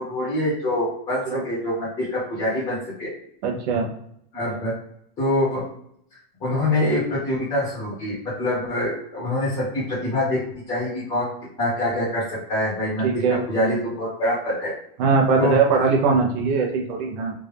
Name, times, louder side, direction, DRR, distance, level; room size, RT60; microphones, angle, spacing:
voice 1, 0.0-3.1 4.3-4.7 5.2-5.7 6.4-11.3 11.6-14.7 15.4-15.6, left 1 dB, 20° left, -10 dB, 1.4 m, -25 dB
voice 2, 3.4-3.8 13.0-13.4 15.0-17.3, right 4 dB, 45° right, 0 dB, 1.0 m, -20 dB
3.5 x 2.7 x 3.4 m, 0.69 s
supercardioid pair, 175°, 30 cm